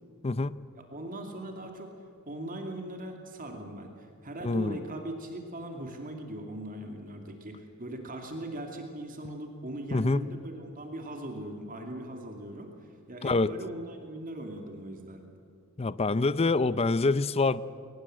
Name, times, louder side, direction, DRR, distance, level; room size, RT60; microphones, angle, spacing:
voice 1, 0.2-0.6 4.4-4.8 9.9-10.3 13.2-13.5 15.8-17.6, left 3 dB, 30° left, 16 dB, 0.6 m, -26 dB
voice 2, 0.9-2.0 2.3-15.2, right 1 dB, 40° right, 3 dB, 2.5 m, -40 dB
23.0 x 19.5 x 7.7 m, 2.6 s
head